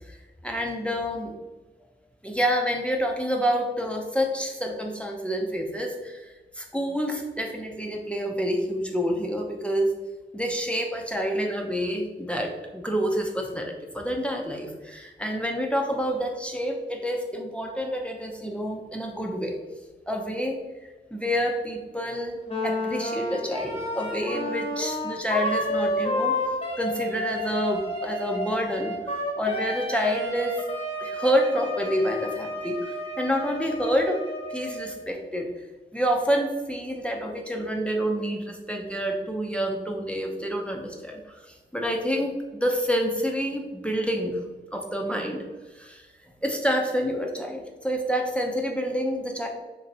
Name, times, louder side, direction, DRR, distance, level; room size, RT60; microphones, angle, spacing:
voice 1, 0.4-1.3 2.2-9.9 10.3-19.6 20.1-20.6 21.1-22.4 22.6-26.4 26.8-30.6 31.0-34.2 34.5-35.5 35.9-44.4 44.7-45.4 45.7-46.0 46.4-49.5, equal, 5° left, 1 dB, 0.5 m, -28 dB
Wind instrument woodwind instrument, 22.5-34.9, left 1 dB, 30° left, 0.8 m, -31 dB
4.1 x 3.0 x 2.6 m, 1.2 s
wide cardioid pair, 50°, 20 cm